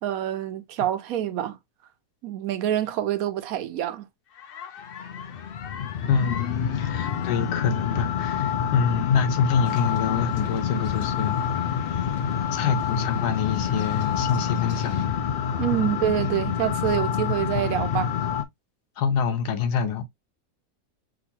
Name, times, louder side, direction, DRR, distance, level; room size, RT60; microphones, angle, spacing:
voice 1, 0.0-1.6 2.2-4.0 15.6-18.1, right 11 dB, 70° right, 0.9 m, -26 dB
sound 1, 4.4-18.4, left 8 dB, 65° left, 0.5 m, -27 dB
voice 2, 6.1-11.4 12.5-15.2 15.8-15.9 19.0-20.0, left 6 dB, 85° left, 1.4 m, -26 dB
sound 2, 9.6-15.1, left 5 dB, 50° left, 1.2 m, -43 dB
6.2 x 2.6 x 2.8 m
omnidirectional pair, 1.7 m